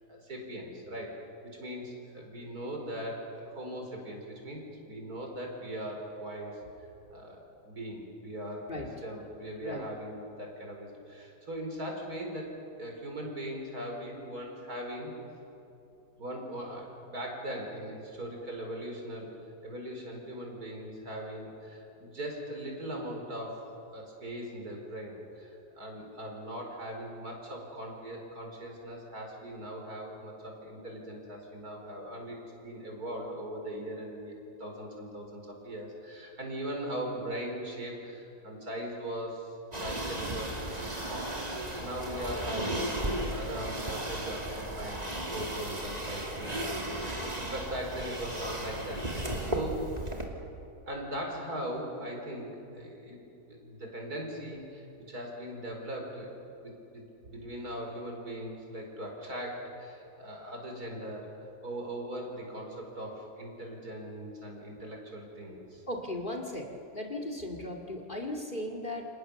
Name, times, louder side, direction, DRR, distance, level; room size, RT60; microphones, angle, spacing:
voice 1, 0.1-1.2 1.6-6.6 7.1-12.5 12.8-15.1 16.2-19.3 19.6-23.6 23.9-32.4 32.6-34.3 34.6-41.3 41.8-45.0 45.3-49.9 50.9-53.2 53.5-56.3 56.6-65.8, equal, 60° right, 1 dB, 5.1 m, -40 dB
sound 1, 39.7-50.2, right 1 dB, 25° right, 2.8 m, -35 dB
voice 2, 65.9-69.1, left 1 dB, 30° left, 3 dB, 2.4 m, -37 dB
29.0 x 26.5 x 7.0 m, 2.9 s
omnidirectional pair, 1.8 m